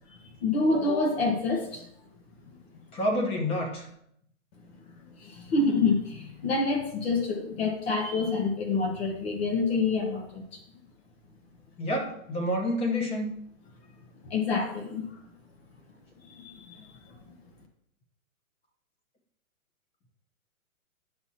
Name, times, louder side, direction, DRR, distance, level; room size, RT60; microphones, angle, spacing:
voice 1, 0.4-1.8 5.2-10.4 14.2-15.2 16.3-16.9, left 3 dB, 45° left, 3 dB, 1.4 m, -27 dB
voice 2, 2.9-3.9 11.8-13.3, left 1 dB, 15° left, 1 dB, 1.1 m, -28 dB
10.0 x 6.1 x 2.9 m, 0.72 s
hypercardioid pair, 145°, 43 cm